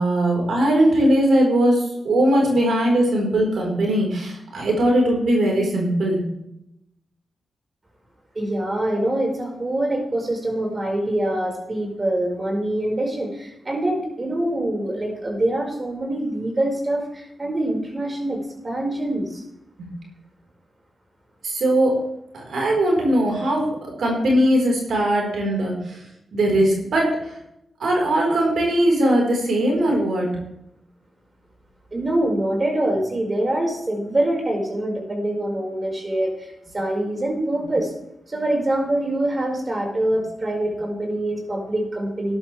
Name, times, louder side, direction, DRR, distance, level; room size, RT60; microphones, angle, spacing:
voice 1, 0.0-6.2 19.8-19.9 21.4-22.0 22.3-26.0 26.3-27.2 27.8-30.3, right 1 dB, 75° right, 0 dB, 4.4 m, -20 dB
voice 2, 8.3-19.4 31.9-37.9 38.3-42.4, right 1 dB, 40° right, 0 dB, 5.1 m, -24 dB
14.0 x 11.0 x 3.4 m, 0.82 s
cardioid pair, 50°, 0 cm